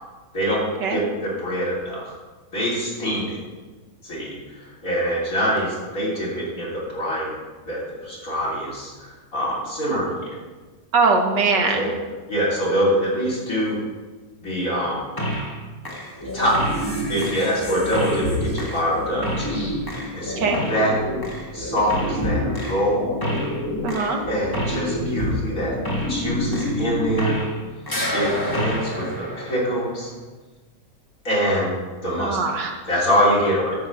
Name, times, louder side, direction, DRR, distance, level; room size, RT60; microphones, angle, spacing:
voice 1, 0.9-2.1 2.5-3.4 4.0-7.3 7.7-10.4 11.5-11.9 12.3-13.8 14.4-15.0 16.3-16.6 17.1-21.0 21.5-23.1 24.3-25.7 26.1-27.4 28.1-30.1 31.2-31.7 32.0-32.4 32.9-33.7, equal, 50° left, -6 dB, 3.8 m, -24 dB
voice 2, 10.9-11.9 20.4-20.6 23.8-24.2 32.2-32.8, right 4 dB, 75° right, 3 dB, 1.8 m, -21 dB
sound 1, 15.2-15.6 15.8-27.6 27.9-30.1, equal, 15° left, 1.6 m, -27 dB
9.5 x 6.0 x 7.1 m, 1.3 s
omnidirectional pair, 1.9 m